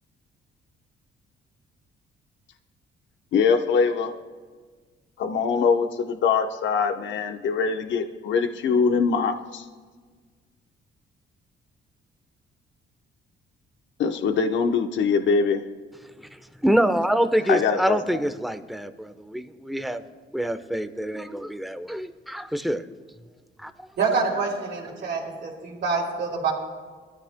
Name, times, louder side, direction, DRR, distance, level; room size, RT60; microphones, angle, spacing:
voice 1, 3.3-4.1 5.2-9.7 14.0-15.6 17.5-18.0, left 5 dB, 70° left, 6 dB, 0.9 m, -23 dB
voice 2, 16.3-20.0 20.3-22.8 23.6-23.9, equal, ahead, 9 dB, 0.9 m, -26 dB
voice 3, 24.0-26.5, right 4 dB, 60° right, -7 dB, 3.4 m, -26 dB
23.0 x 14.0 x 2.2 m, 1.5 s
cardioid pair, 90°, 20 cm